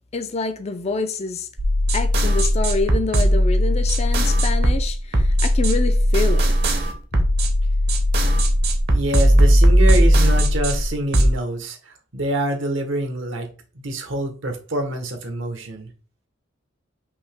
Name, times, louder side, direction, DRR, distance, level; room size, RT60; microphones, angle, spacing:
voice 1, 0.1-1.5 1.9-6.5, left 3 dB, 35° left, 0.4 m, -26 dB
sound 1, 1.6-11.3, equal, 60° right, 0.9 m, -17 dB
voice 2, 8.9-13.5 13.7-15.9, right 1 dB, 75° right, 1.1 m, -26 dB
5.4 x 2.9 x 3.4 m
head